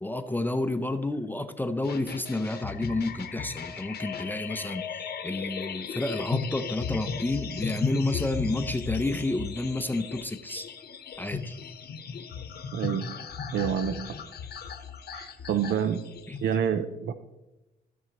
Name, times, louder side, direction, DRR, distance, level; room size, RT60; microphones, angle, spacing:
voice 1, 0.0-10.7 11.2-11.5 16.3-16.4, left 2 dB, 10° left, 9 dB, 0.6 m, -30 dB
sound 1, 1.8-16.5, left 6 dB, 55° left, 1.0 m, -36 dB
voice 2, 12.7-13.2 13.5-14.1 15.1-16.0 16.4-17.1, right 8 dB, 70° right, 10 dB, 0.6 m, -28 dB
15.0 x 6.3 x 3.0 m, 1.0 s
cardioid pair, 90°, 20 cm